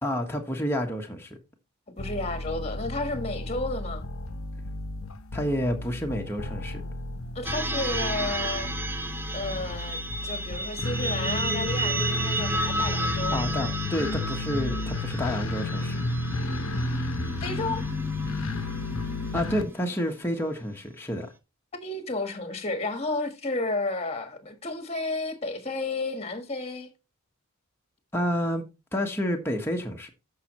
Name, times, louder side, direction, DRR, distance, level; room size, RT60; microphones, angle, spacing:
voice 1, 0.0-1.4 5.3-6.8 13.3-16.0 19.3-21.3 28.1-28.6 28.9-30.1, equal, 10° left, 1.3 m, -29 dB
sound 1, 2.0-19.6, left 2 dB, 70° left, 0.9 m, -32 dB
voice 2, 2.0-4.1 7.3-8.7 9.3-13.4 17.4-17.8 21.7-26.9, left 2 dB, 30° left, 1.4 m, -32 dB
sound 2, 7.4-20.0, right 1 dB, 10° right, 0.8 m, -33 dB
13.5 x 5.7 x 3.0 m
head